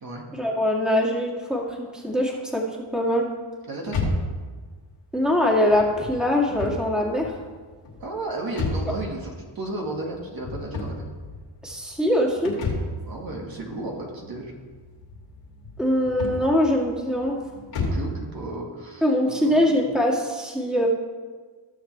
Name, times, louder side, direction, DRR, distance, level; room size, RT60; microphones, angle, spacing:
voice 1, 0.3-2.6 2.9-3.3 5.1-7.3 11.6-12.6 15.8-17.4 19.0-20.9, left 1 dB, ahead, -2 dB, 2.2 m, -23 dB
voice 2, 3.7-4.1 8.0-11.1 13.0-14.5 17.8-19.6, right 2 dB, 45° right, -1 dB, 2.0 m, -33 dB
sound 1, 3.9-18.2, left 2 dB, 90° left, 2.7 m, -33 dB
16.0 x 6.6 x 3.4 m, 1.5 s
cardioid pair, 75°, 48 cm